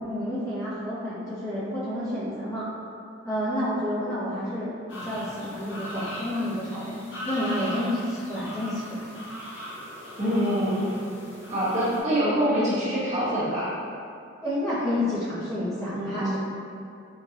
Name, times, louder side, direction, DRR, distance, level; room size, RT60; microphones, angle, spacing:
voice 1, 0.0-2.7 3.2-4.7 5.0-9.1 14.4-16.4, left 1 dB, 15° left, -11 dB, 0.7 m, -29 dB
sound 1, 4.9-12.0, equal, 70° left, 0.9 m, -39 dB
voice 2, 10.2-10.9 11.5-13.7 15.9-16.4, equal, 35° right, -11 dB, 1.0 m, -25 dB
3.8 x 2.2 x 2.7 m, 2.4 s
head